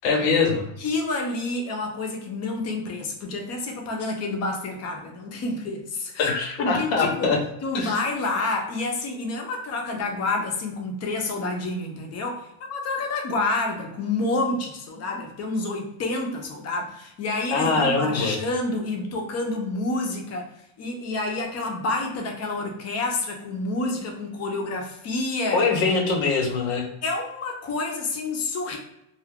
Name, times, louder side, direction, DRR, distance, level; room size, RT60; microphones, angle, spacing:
voice 1, 0.0-0.6 6.2-7.4 7.7-8.0 17.5-18.4 25.5-26.9, left 4 dB, 75° left, 3 dB, 0.9 m, -23 dB
voice 2, 0.8-6.3 6.6-20.5 20.8-25.6 27.0-28.8, left 2 dB, 35° left, 2 dB, 0.7 m, -28 dB
2.5 x 2.3 x 3.6 m, 0.82 s
cardioid pair, 140°, 46 cm